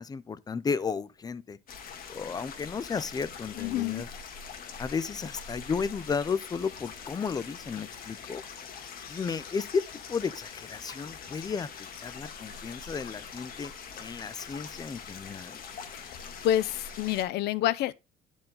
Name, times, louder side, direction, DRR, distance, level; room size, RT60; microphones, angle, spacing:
voice 1, 0.0-1.6 2.1-4.1 4.8-8.4 9.1-11.7 12.0-13.7 14.0-15.6, left 5 dB, 25° left, 0.5 m, -33 dB
sound 1, 1.7-17.2, left 6 dB, 60° left, 1.6 m, -43 dB
voice 2, 3.5-4.0 15.9-16.2 16.4-17.9, left 12 dB, 75° left, 0.6 m, -28 dB
10.0 x 4.5 x 3.8 m
cardioid pair, 110°, 17 cm